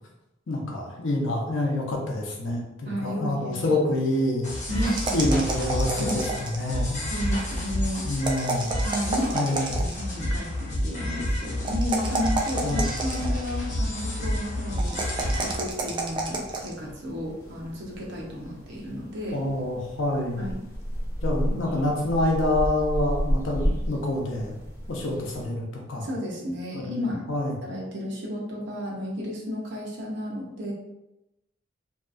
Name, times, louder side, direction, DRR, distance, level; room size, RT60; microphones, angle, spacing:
voice 1, 0.5-7.0 8.1-8.7 9.3-9.8 12.6-12.9 19.3-20.5 21.2-24.6 24.9-26.1 26.7-27.5, left 1 dB, 75° left, -1 dB, 0.6 m, -27 dB
voice 2, 2.9-3.8 4.7-5.0 5.9-6.2 7.1-8.1 8.8-19.4 20.4-20.6 26.0-27.3 27.6-30.7, left 1 dB, 65° right, -3 dB, 0.7 m, -33 dB
sound 1, 4.4-15.5, equal, 40° left, 0.9 m, -29 dB
sound 2, 5.0-6.8 8.2-10.1 11.6-13.5 14.8-16.7, right 3 dB, 25° right, 0.3 m, -30 dB
sound 3, 15.0-25.5, equal, 15° left, 0.7 m, -33 dB
2.7 x 2.3 x 2.5 m, 0.93 s
head